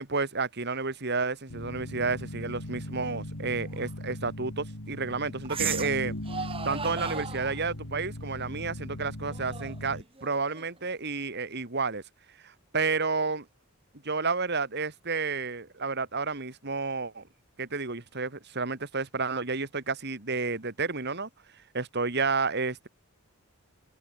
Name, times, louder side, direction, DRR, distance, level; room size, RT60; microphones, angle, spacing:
voice 1, 0.0-6.1 6.6-12.0 12.4-13.5 14.0-17.2 17.6-21.3 21.7-22.9, right 4 dB, 50° right, 2.4 m, -31 dB
sound 1, 1.5-10.0, left 1 dB, 80° left, 3.6 m, -39 dB
sound 2, 3.7-3.9 5.5-6.0 6.3-7.6 9.3-10.8, right 6 dB, 25° right, 2.6 m, -36 dB
head